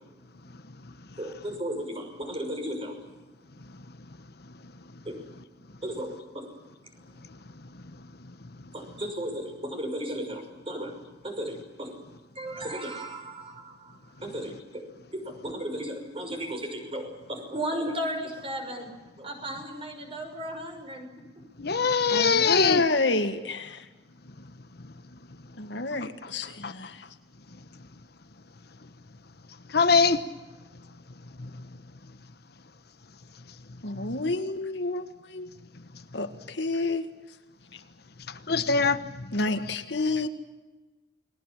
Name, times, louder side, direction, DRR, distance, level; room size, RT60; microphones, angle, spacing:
voice 1, 1.2-3.0 5.0-5.2 5.8-6.5 8.7-12.0 12.3-18.9 19.2-21.1, equal, 30° right, 6.0 m, -35 dB
voice 2, 21.6-22.8 26.6-26.7 29.7-30.2 31.4-31.5 38.5-39.7 40.0-40.1, left 5 dB, 60° left, 1.2 m, -23 dB
voice 3, 22.1-23.8 25.6-26.9 33.8-35.5 36.1-37.1 39.3-40.3, left 3 dB, 80° left, 2.0 m, -29 dB
29.5 x 21.5 x 7.5 m
head